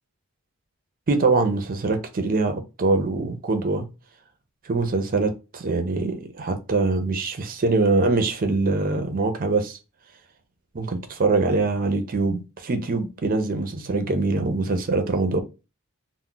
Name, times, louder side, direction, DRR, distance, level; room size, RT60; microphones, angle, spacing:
voice 1, 1.1-3.9 4.7-9.8 10.7-15.4, right 3 dB, 40° right, 0.5 m, -23 dB
2.3 x 2.1 x 3.7 m
head